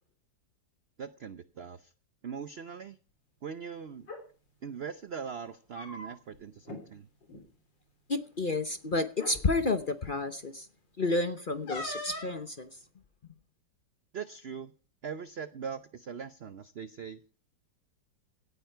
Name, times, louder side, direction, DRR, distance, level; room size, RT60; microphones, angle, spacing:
voice 1, 1.0-1.9 2.2-3.0 3.4-4.1 4.6-7.1 14.1-14.7 15.0-17.2, right 6 dB, 65° right, 13 dB, 0.6 m, -41 dB
sound 1, 4.0-4.2 5.5-6.4 6.6-6.8 7.2-7.4 8.4-8.5 9.1-9.4 11.7-12.4, left 2 dB, 80° left, 4.2 m, -40 dB
voice 2, 8.1-10.7 11.0-12.7, left 3 dB, 40° left, 10 dB, 0.8 m, -30 dB
17.5 x 9.4 x 4.5 m, 0.40 s
omnidirectional pair, 2.0 m